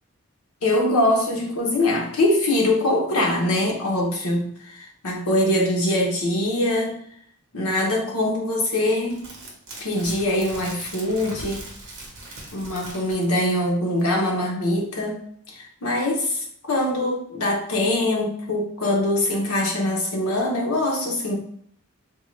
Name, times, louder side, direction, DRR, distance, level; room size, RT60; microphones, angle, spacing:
voice 1, 0.6-7.0 7.5-9.3 9.8-11.7 12.5-15.2 15.5-21.4, left 1 dB, 80° left, 0 dB, 0.9 m, -23 dB
sound 1, 9.1-13.7 14.0-14.1, right 2 dB, 55° right, 0.9 m, -40 dB
3.6 x 2.2 x 3.1 m, 0.63 s
head